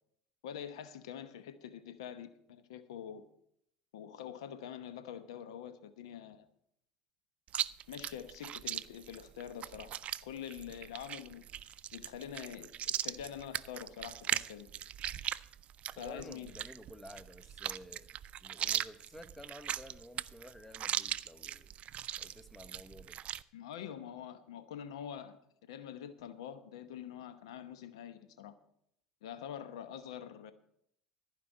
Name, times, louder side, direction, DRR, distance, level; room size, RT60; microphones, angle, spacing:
voice 1, 0.4-3.3 3.9-6.5 7.9-9.9 10.2-12.7 13.0-14.7 16.0-16.5 23.5-25.4 25.7-28.5 29.2-30.5, left 9 dB, 85° left, 12 dB, 0.9 m, -45 dB
Chewing mastication, 7.5-23.4, right 10 dB, 50° right, 0.4 m, -39 dB
voice 2, 16.0-18.1 18.4-21.7 22.2-23.2, left 1 dB, 10° left, 12 dB, 1.0 m, -52 dB
14.5 x 5.1 x 8.7 m, 0.72 s
hypercardioid pair, 75°, 3 cm